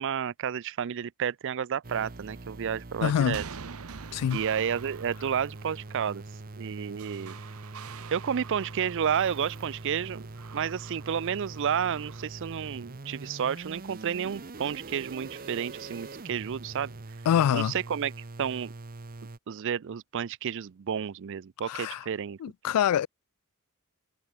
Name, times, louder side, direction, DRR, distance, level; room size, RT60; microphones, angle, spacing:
voice 1, 0.0-3.4 4.3-6.2 6.6-7.4 8.1-10.3 10.5-16.9 17.5-18.1 18.4-18.7 19.5-22.4, right 8 dB, 55° right, 0.4 m, -31 dB
sound 1, 1.8-19.4, right 2 dB, 40° right, 0.9 m, -43 dB
sound 2, 2.9-12.2, right 6 dB, 70° right, 0.8 m, -46 dB
voice 2, 3.0-3.4 4.1-4.4 17.3-17.7 21.7-22.0 22.4-23.1, left 9 dB, 85° left, 0.3 m, -25 dB
head